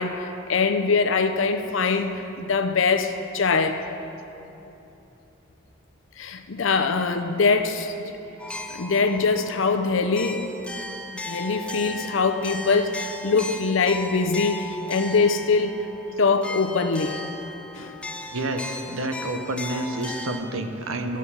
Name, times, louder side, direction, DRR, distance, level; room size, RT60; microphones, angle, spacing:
voice 1, 0.0-3.8 6.2-8.1 8.7-10.5 11.1-15.8 16.2-17.2 17.7-18.0, left 4 dB, 70° left, 7 dB, 0.6 m, -23 dB
sound 1, 8.4-20.4, left 1 dB, 5° left, 0.4 m, -37 dB
voice 2, 18.3-21.2, right 1 dB, 85° right, 6 dB, 0.9 m, -29 dB
14.0 x 6.2 x 5.6 m, 3.0 s
head